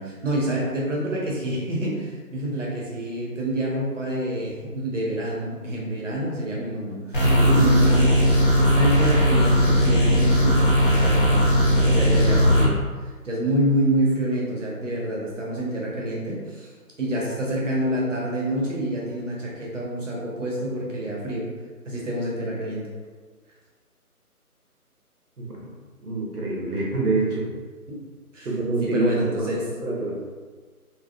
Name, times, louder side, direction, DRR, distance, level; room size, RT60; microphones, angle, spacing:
voice 1, 0.0-7.3 7.5-8.1 8.6-11.5 11.7-12.8 13.2-16.7 17.0-21.5 21.9-22.9 27.9-28.0 28.3-28.5 28.8-29.7, right 1 dB, 55° right, -3 dB, 1.2 m, -27 dB
sound 1, 7.1-12.7, equal, 35° left, 0.8 m, -18 dB
voice 2, 7.4-7.7 12.0-12.2 25.4-25.7 26.0-27.5 28.4-30.2, right 3 dB, 75° right, -3 dB, 1.4 m, -26 dB
4.2 x 2.9 x 2.5 m, 1.5 s
figure-of-eight pair, 165°, 46 cm